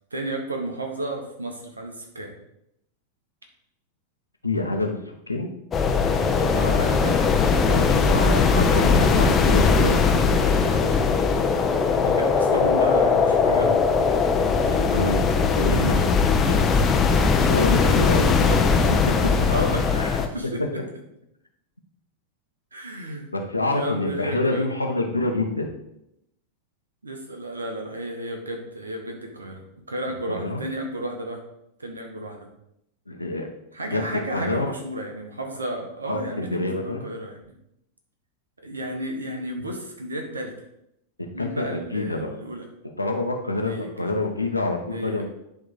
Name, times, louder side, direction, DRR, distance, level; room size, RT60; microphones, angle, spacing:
voice 1, 0.1-2.3 6.5-7.3 12.0-13.8 14.7-15.1 18.2-18.8 19.2-20.8 22.7-23.3 23.7-24.7 27.0-29.6 29.9-31.4 31.8-32.5 33.7-37.5 38.6-40.7 41.3-42.7 43.6-44.1 44.9-45.2, right 1 dB, 75° right, 3 dB, 1.6 m, -32 dB
voice 2, 4.4-5.5 7.7-10.3 14.9-15.2 15.6-16.7 17.5-19.3 19.9-20.2 20.6-20.7 23.3-25.7 30.3-30.6 33.1-33.5 33.8-34.7 36.1-37.0 41.4-42.4 43.0-45.2, left 2 dB, 85° left, 3 dB, 1.1 m, -27 dB
sound 1, 5.7-20.3, left 5 dB, 20° left, 0.8 m, -20 dB
10.5 x 3.7 x 4.9 m, 0.81 s
figure-of-eight pair, 90°, 0 cm